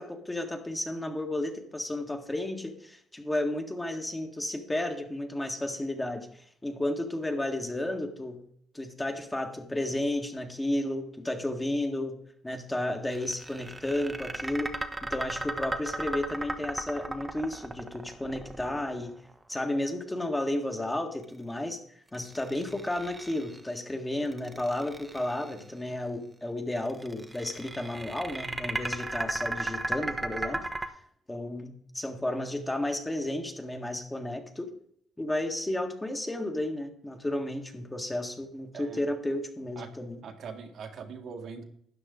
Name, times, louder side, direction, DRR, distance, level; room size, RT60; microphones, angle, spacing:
voice 1, 0.0-8.4 8.7-12.2 12.4-14.7 15.0-19.1 19.5-21.8 22.1-30.7 31.3-34.7 35.2-40.2, left 1 dB, 15° left, 4 dB, 1.8 m, -32 dB
sound 1, 13.1-19.3 22.1-23.7 24.2-25.6 26.8-30.9, right 2 dB, 15° right, 1.1 m, -35 dB
voice 2, 40.2-41.6, right 5 dB, 70° right, 3 dB, 1.8 m, -42 dB
12.5 x 9.1 x 3.9 m, 0.65 s
cardioid pair, 90°, 0 cm